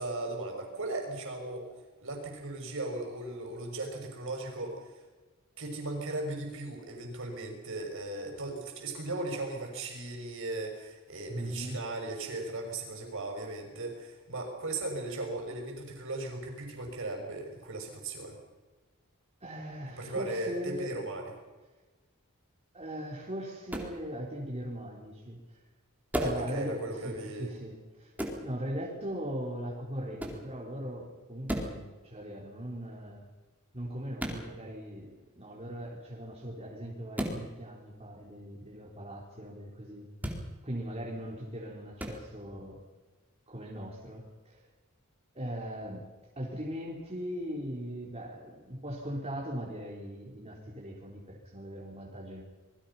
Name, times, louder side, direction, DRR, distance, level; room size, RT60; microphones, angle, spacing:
voice 1, 0.0-1.7 2.0-4.9 5.6-18.4 20.0-21.3 26.2-27.5, right 2 dB, 65° right, 2 dB, 6.3 m, -37 dB
voice 2, 11.3-11.8 19.4-20.9 22.7-25.4 26.2-28.1 28.4-33.2 33.7-40.1 40.6-42.8 43.5-44.7 45.3-46.1 46.4-52.4, equal, 30° right, -3 dB, 4.1 m, -39 dB
sound 1, 23.7-24.0 26.1-26.5 28.2-28.4 30.2-30.4 31.5-31.8 34.2-34.4 37.1-37.4 40.2-40.4 42.0-42.2, equal, 10° right, 4.2 m, -33 dB
27.0 x 22.5 x 5.7 m, 1.2 s
head